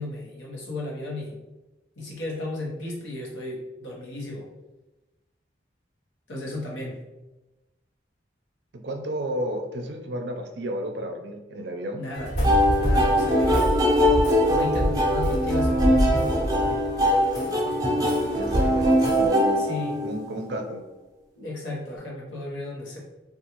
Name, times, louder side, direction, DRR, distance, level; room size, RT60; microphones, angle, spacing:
voice 1, 0.0-1.4 2.0-4.5 6.3-7.0 12.0-12.3 12.8-13.8 14.4-16.8 19.6-20.0 21.3-23.0, left 2 dB, 85° left, -3 dB, 1.0 m, -34 dB
voice 2, 8.8-12.0 17.9-19.7 20.0-20.8, equal, 65° right, 4 dB, 0.5 m, -32 dB
sound 1, 12.1-19.3, equal, 60° left, 1.2 m, -27 dB
sound 2, 12.4-20.4, equal, 20° right, 0.6 m, -22 dB
3.5 x 2.3 x 2.9 m, 1.1 s
head